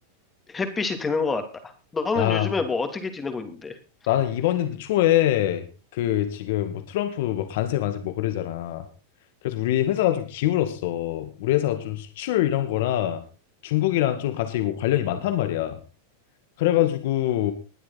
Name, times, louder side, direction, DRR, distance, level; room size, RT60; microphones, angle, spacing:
voice 1, 0.5-1.4 1.9-3.7, left 4 dB, 15° left, 7 dB, 2.8 m, -27 dB
voice 2, 2.2-2.5 4.1-5.6 5.9-8.8 9.4-13.2 13.6-15.8 16.6-17.5, left 13 dB, 65° left, 9 dB, 2.0 m, -24 dB
21.0 x 7.9 x 4.1 m, 0.33 s
supercardioid pair, 130°, 0 cm